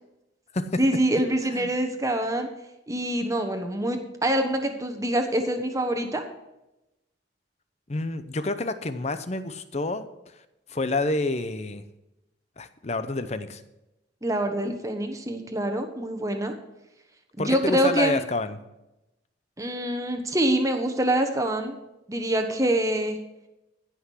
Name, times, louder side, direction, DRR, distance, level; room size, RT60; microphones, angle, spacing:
voice 1, 0.8-2.5 2.9-6.2 14.2-16.5 17.4-18.2 19.6-21.8 22.1-23.2, right 1 dB, 15° right, 5 dB, 1.2 m, -25 dB
voice 2, 7.9-10.1 10.7-11.8 12.6-13.6 17.4-18.6, left 2 dB, 35° left, 11 dB, 0.7 m, -28 dB
15.5 x 6.0 x 6.4 m, 0.95 s
head